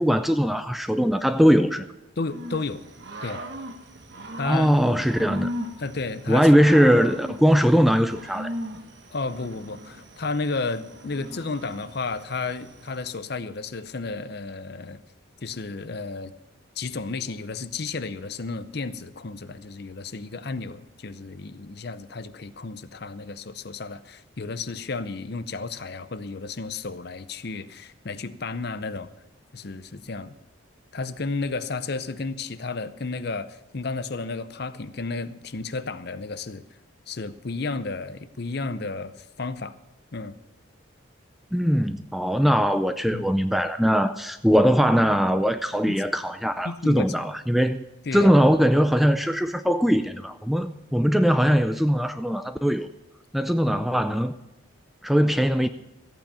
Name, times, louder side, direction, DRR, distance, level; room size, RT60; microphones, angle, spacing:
voice 1, 0.0-1.9 4.4-5.5 6.3-8.5 41.5-47.8 48.1-52.9 53.3-54.4 55.0-55.7, equal, ahead, 0.4 m, -21 dB
voice 2, 2.2-2.8 3.2-3.4 4.3-5.0 5.8-6.6 9.1-15.0 15.4-16.3 16.8-29.1 29.5-30.3 30.9-36.6 37.1-39.8 40.1-40.4 42.4-42.5 43.1-43.2 45.9-46.0 46.6-47.1 48.1-48.3, left 3 dB, 50° left, 0.6 m, -32 dB
Growling / Cricket, 2.3-13.2, equal, 60° right, 1.3 m, -38 dB
14.5 x 8.7 x 6.9 m
head